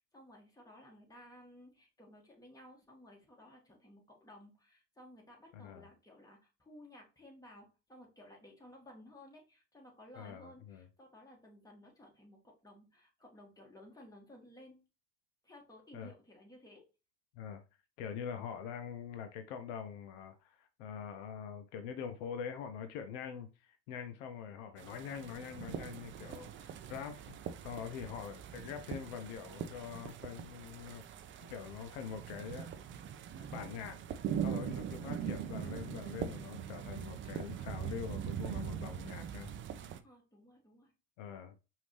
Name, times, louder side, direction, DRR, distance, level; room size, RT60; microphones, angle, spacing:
voice 1, 0.0-14.8 15.4-16.8 26.1-26.6 40.0-40.9, left 1 dB, 10° left, 1.9 m, -57 dB
voice 2, 5.5-5.9 10.1-10.8 15.9-16.1 17.3-17.6 18.0-31.0 31.5-32.7 33.4-34.0 34.4-39.5 41.2-41.5, left 7 dB, 65° left, 0.7 m, -44 dB
sound 1, 24.8-40.0, right 8 dB, 35° right, 0.5 m, -42 dB
5.0 x 2.7 x 3.3 m
hypercardioid pair, 70°, 37 cm